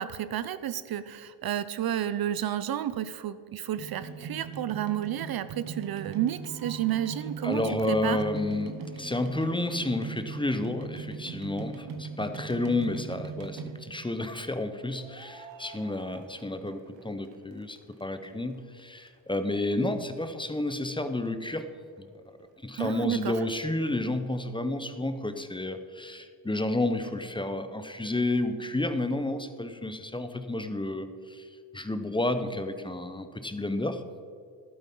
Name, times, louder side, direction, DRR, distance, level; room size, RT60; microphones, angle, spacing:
voice 1, 0.0-7.6 7.9-8.2 22.8-23.3, right 11 dB, 55° right, 13 dB, 0.6 m, -31 dB
sound 1, 3.8-14.1 14.9-17.0 17.3-18.3 18.8-18.9 19.1-19.2 19.3-19.4 19.9-20.0 20.2-20.3, right 5 dB, 80° right, 1.4 m, -40 dB
voice 2, 7.4-21.7 22.0-22.1 22.6-34.0, left 2 dB, 10° left, 9 dB, 0.9 m, -31 dB
12.0 x 8.7 x 5.5 m, 2.3 s
cardioid pair, 75°, 43 cm